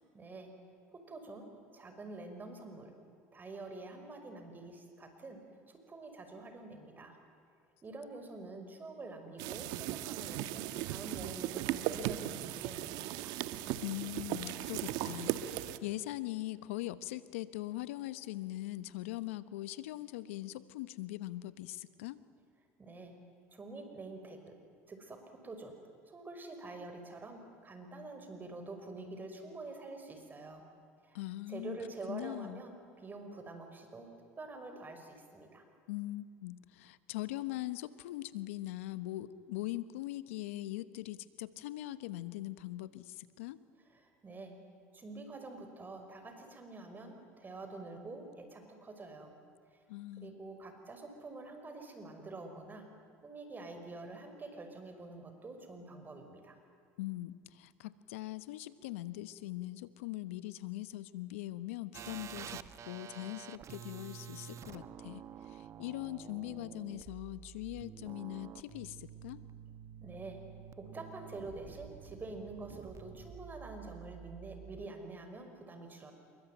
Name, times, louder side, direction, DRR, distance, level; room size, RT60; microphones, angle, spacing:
voice 1, 0.1-0.5 0.9-2.9 3.3-5.4 5.7-7.2 7.8-13.3 22.8-23.1 23.5-24.6 24.9-25.7 26.1-30.6 31.0-31.2 31.5-34.1 34.4-35.6 43.9-44.6 44.9-49.3 49.7-49.8 50.2-52.9 53.2-56.6 70.0-70.4 70.8-76.1, right 2 dB, 25° right, 6 dB, 5.6 m, -47 dB
sound 1, 9.4-15.8, right 14 dB, 70° right, 1.3 m, -37 dB
voice 2, 13.8-22.2 31.1-31.8 32.1-32.6 35.9-43.6 49.9-50.3 57.0-69.4, left 16 dB, 85° left, 15 dB, 1.1 m, -41 dB
sound 2, 61.9-74.9, right 9 dB, 45° right, 1.2 m, -49 dB
27.5 x 23.0 x 9.3 m, 2.4 s
supercardioid pair, 90°, 7 cm